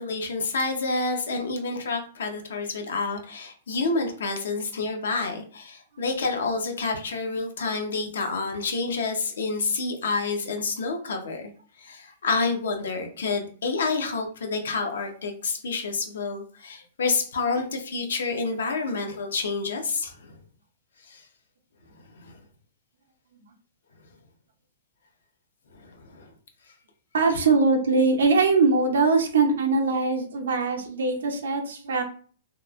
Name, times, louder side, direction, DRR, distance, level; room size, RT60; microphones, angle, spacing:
voice 1, 0.0-11.5 11.8-20.3 21.1-21.2 22.2-22.3 25.7-26.3, left 4 dB, 85° left, 4 dB, 0.7 m, -28 dB
voice 2, 27.1-32.0, right 4 dB, 85° right, 3 dB, 0.6 m, -22 dB
2.9 x 2.1 x 2.4 m, 0.44 s
hypercardioid pair, 150°, 0 cm